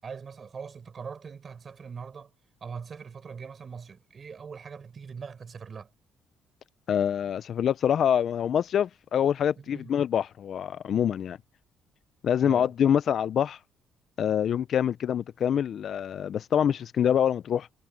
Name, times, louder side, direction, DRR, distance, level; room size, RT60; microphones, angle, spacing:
voice 1, 0.0-2.3 2.6-5.9 9.6-9.9 12.4-12.7, right 6 dB, 25° right, 5.0 m, -41 dB
voice 2, 6.9-11.4 12.2-13.6 14.2-17.7, left 9 dB, 40° left, 0.3 m, -25 dB
cardioid pair, 180°, 0 cm